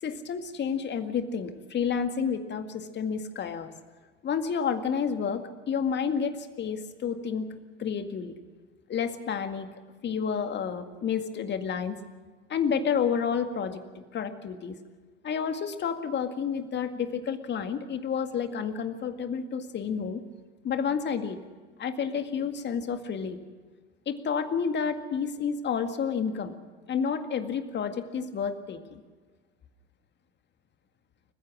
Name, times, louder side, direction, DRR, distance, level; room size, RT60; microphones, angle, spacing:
voice 1, 0.0-3.7 4.2-7.5 7.8-8.3 8.9-9.7 10.0-12.0 12.5-13.8 14.1-14.8 15.2-20.2 20.6-21.4 21.8-23.4 24.1-26.5 26.9-29.0, left 6 dB, 30° left, 8 dB, 2.0 m, -30 dB
29.5 x 15.5 x 6.2 m, 1.4 s
figure-of-eight pair, 75°, 34 cm